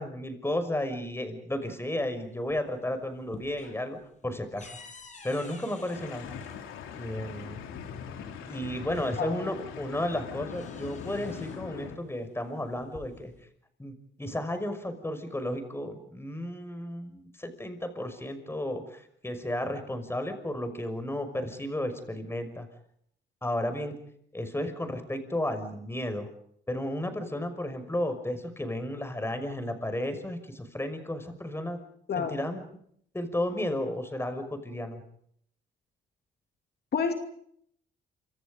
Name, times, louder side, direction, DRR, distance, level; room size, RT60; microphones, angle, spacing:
voice 1, 0.0-4.0 4.2-4.7 5.2-6.3 6.9-7.6 8.5-13.3 13.8-22.7 23.4-23.9 24.3-26.3 26.7-31.8 32.2-32.6 33.1-35.0, left 1 dB, 10° left, 8 dB, 5.9 m, -33 dB
sound 1, 2.2-2.8 3.1-7.1 8.2-8.3 8.7-9.7 10.0-11.7 12.6-13.4, left 3 dB, 40° left, 7.7 m, -50 dB
sound 2, 5.9-12.0, left 7 dB, 90° left, 3.3 m, -41 dB
voice 2, 32.1-32.4 36.9-37.1, left 6 dB, 55° left, 5 dB, 2.8 m, -28 dB
28.0 x 26.0 x 5.3 m, 0.68 s
cardioid pair, 90°, 20 cm